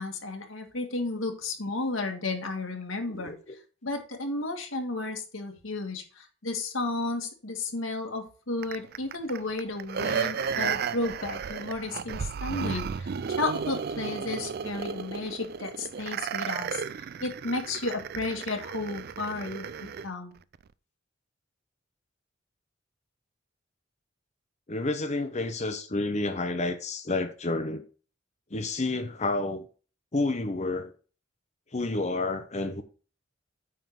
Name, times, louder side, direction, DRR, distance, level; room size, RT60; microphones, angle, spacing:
voice 1, 0.0-3.3 3.8-16.8 17.2-19.7 20.0-20.3, left 2 dB, 85° left, 2.0 m, -33 dB
voice 2, 3.1-3.6 24.7-27.8 28.5-29.7 30.1-30.9 31.7-32.8, left 2 dB, 35° left, 0.8 m, -30 dB
sound 1, 8.6-20.1 20.5-20.6, right 6 dB, 50° right, 0.4 m, -33 dB
9.3 x 3.7 x 6.2 m
head